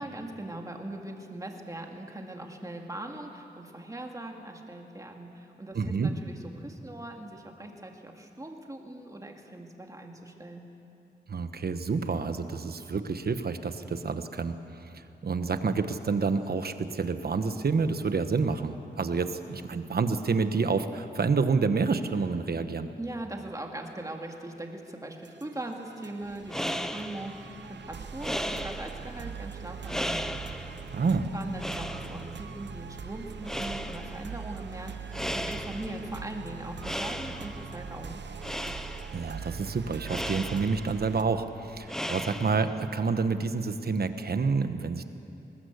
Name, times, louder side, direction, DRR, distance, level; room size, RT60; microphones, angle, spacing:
voice 1, 0.0-10.6 23.0-30.3 31.3-38.2, right 1 dB, 20° right, 2 dB, 2.1 m, -40 dB
voice 2, 5.7-6.1 11.3-14.5 15.2-22.9 30.9-31.3 39.1-45.1, right 4 dB, 60° right, 9 dB, 1.1 m, -28 dB
sound 1, 25.2-41.2, right 6 dB, 80° right, 0.8 m, -42 dB
sound 2, 26.3-42.9, equal, 5° left, 0.7 m, -37 dB
21.5 x 19.5 x 8.2 m, 2.8 s
wide cardioid pair, 120°, 18 cm